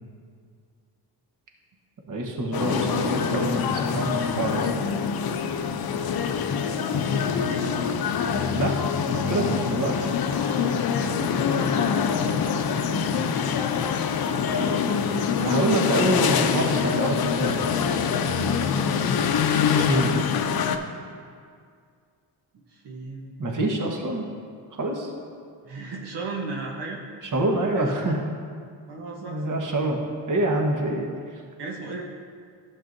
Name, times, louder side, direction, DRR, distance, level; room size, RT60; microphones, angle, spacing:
voice 1, 2.1-4.8 8.5-8.7 9.1-10.1 10.5-10.6 15.4-17.7 19.8-20.2 23.4-24.3 24.7-25.1 27.3-28.2 29.2-30.0 30.3-31.1, right 1 dB, 45° right, 1 dB, 1.4 m, -26 dB
sound 1, 2.5-20.8, left 6 dB, 55° left, 0.7 m, -25 dB
voice 2, 5.9-7.7 9.4-10.0 11.0-13.4 18.7-19.0 22.5-23.3 25.6-27.0 27.7-27.9 28.9-29.8 31.6-32.0, right 3 dB, 70° right, -2 dB, 1.2 m, -37 dB
sound 2, 10.3-11.6, left 1 dB, 10° left, 1.1 m, -41 dB
11.5 x 7.5 x 2.7 m, 2.2 s
cardioid pair, 70°, 44 cm